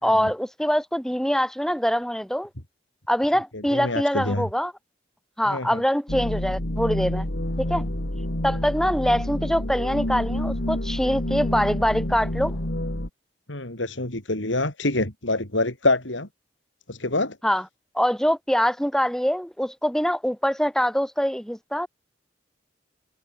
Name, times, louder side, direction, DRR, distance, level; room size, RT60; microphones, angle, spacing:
voice 1, 0.0-2.5 3.1-4.7 5.4-7.3 7.6-7.8 8.4-12.6 17.4-17.6 17.9-21.9, equal, 5° left, 2.1 m, -24 dB
voice 2, 3.5-4.5 5.5-5.8 13.5-16.3 16.9-17.4, left 2 dB, 85° left, 4.6 m, -26 dB
sound 1, 6.1-13.1, left 1 dB, 65° left, 3.0 m, -28 dB
head